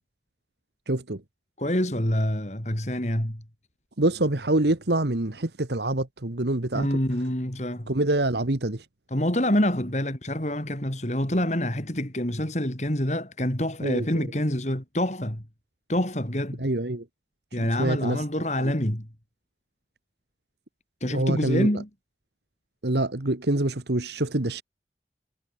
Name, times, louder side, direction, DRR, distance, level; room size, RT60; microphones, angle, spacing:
voice 1, 0.9-1.2 4.0-6.9 7.9-8.8 13.8-14.3 16.6-17.0 17.6-18.2 18.6-18.7 21.0-21.7 22.8-24.6, right 2 dB, 75° right, 1.7 m, -26 dB
voice 2, 1.6-3.4 6.7-7.9 9.1-15.4 15.9-16.6 17.5-19.1 21.0-21.9, left 1 dB, 40° left, 3.6 m, -26 dB
head